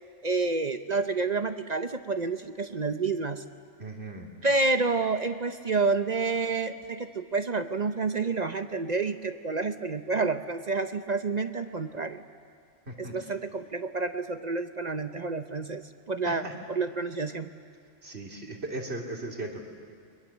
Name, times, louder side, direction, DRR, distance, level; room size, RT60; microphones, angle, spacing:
voice 1, 0.2-3.4 4.4-12.2 13.0-15.8 16.1-16.4 16.7-17.5, right 3 dB, 40° right, 9 dB, 0.7 m, -29 dB
voice 2, 3.8-4.3 12.9-13.2 16.2-16.5 18.0-19.6, right 2 dB, 55° right, 0 dB, 3.2 m, -37 dB
29.5 x 23.0 x 7.3 m, 2.3 s
omnidirectional pair, 1.3 m